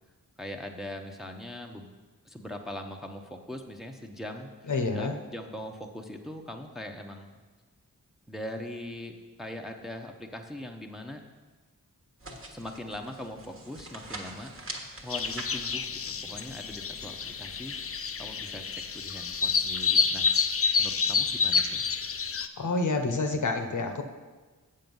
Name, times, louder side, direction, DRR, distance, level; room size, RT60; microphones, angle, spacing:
voice 1, 0.4-1.9 2.2-7.4 8.3-11.2 12.5-14.5 15.0-17.8 18.2-20.3 20.8-21.9, left 1 dB, ahead, 3 dB, 0.8 m, -41 dB
voice 2, 4.7-5.1 22.6-24.0, left 3 dB, 55° left, 5 dB, 0.9 m, -28 dB
sound 1, 12.2-17.9, right 2 dB, 35° right, 1.3 m, -45 dB
sound 2, 15.1-22.5, left 5 dB, 40° left, 0.5 m, -28 dB
7.6 x 6.8 x 5.4 m, 1.3 s
wide cardioid pair, 70°, 35 cm